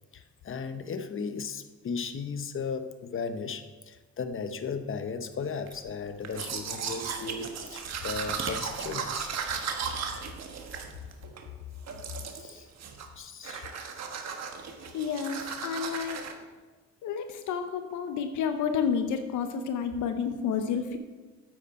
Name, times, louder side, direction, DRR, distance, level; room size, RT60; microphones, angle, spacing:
voice 1, 0.1-9.3 12.3-12.7 13.2-13.7, left 5 dB, 45° left, 9 dB, 0.9 m, -36 dB
sound 1, 5.7-11.2, right 5 dB, 40° right, 1.3 m, -44 dB
Domestic sounds home sounds, 6.2-11.5 11.9-12.5 12.8-13.2 13.4-16.3, right 6 dB, 60° right, 1.3 m, -36 dB
voice 2, 14.6-16.2 17.0-21.0, left 7 dB, 75° left, 7 dB, 0.8 m, -30 dB
9.0 x 8.6 x 4.3 m, 1.3 s
cardioid pair, 90°, 30 cm